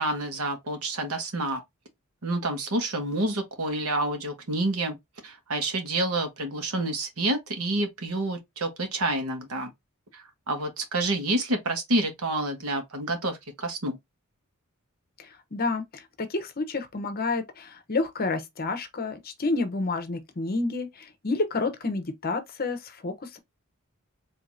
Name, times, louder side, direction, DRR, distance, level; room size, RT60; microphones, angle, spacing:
voice 1, 0.0-1.6 2.2-5.0 5.2-9.7 10.1-14.0, right 2 dB, 80° right, 1.2 m, -28 dB
voice 2, 15.2-23.4, left 3 dB, 45° left, 0.8 m, -30 dB
4.6 x 2.8 x 2.6 m
head